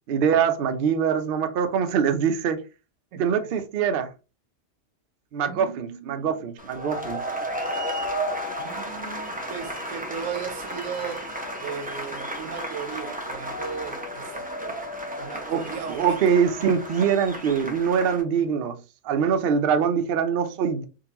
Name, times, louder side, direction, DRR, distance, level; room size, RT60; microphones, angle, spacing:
voice 1, 0.1-2.6 3.2-4.1 5.3-7.2 15.5-18.8 19.0-20.9, right 7 dB, 60° right, 0.7 m, -23 dB
voice 2, 3.1-3.5 5.4-6.3 6.9-7.2 8.6-11.3 11.6-14.8 15.2-16.2, right 7 dB, 90° right, 1.0 m, -37 dB
sound 1, 6.6-18.2, equal, 10° right, 0.6 m, -33 dB
3.8 x 2.7 x 2.8 m
omnidirectional pair, 1.3 m